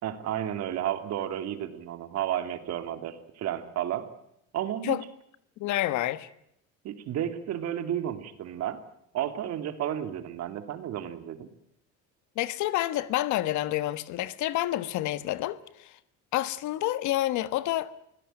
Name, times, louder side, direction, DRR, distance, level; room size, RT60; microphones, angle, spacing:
voice 1, 0.0-4.1 4.5-5.0 6.8-8.8 9.1-11.5, right 11 dB, 55° right, 2.7 m, -32 dB
voice 2, 5.6-6.3 12.4-15.9 16.3-17.9, left 15 dB, 70° left, 1.4 m, -28 dB
24.0 x 17.0 x 9.0 m
cardioid pair, 150°, 30 cm